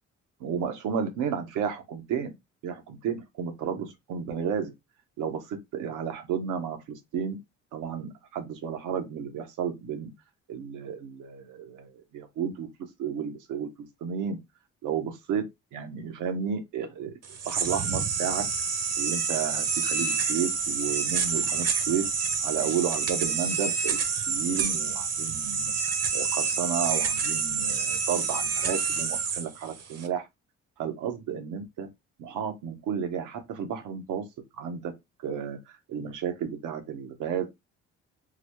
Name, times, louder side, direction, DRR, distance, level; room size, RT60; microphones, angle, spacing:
voice 1, 0.4-2.4 2.6-4.7 5.2-7.4 7.7-10.1 10.5-12.7 13.0-13.7 14.0-14.4 14.8-15.5 15.7-17.1 17.4-18.4 18.9-22.1 22.4-30.3 30.8-31.9 32.2-34.2 34.6-34.9 35.2-37.5, right 7 dB, 90° right, 0.8 m, -32 dB
sound 1, 17.2-30.1, right 5 dB, 55° right, 0.7 m, -28 dB
3.9 x 2.2 x 3.0 m
cardioid pair, 90°, 30 cm